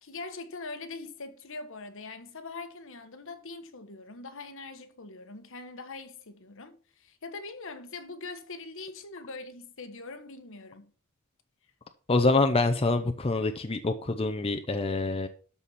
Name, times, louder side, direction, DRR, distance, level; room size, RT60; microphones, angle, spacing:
voice 1, 0.0-10.9, left 3 dB, 65° left, 1.3 m, -42 dB
voice 2, 12.1-15.3, left 3 dB, 25° left, 0.6 m, -26 dB
12.5 x 4.2 x 6.1 m
head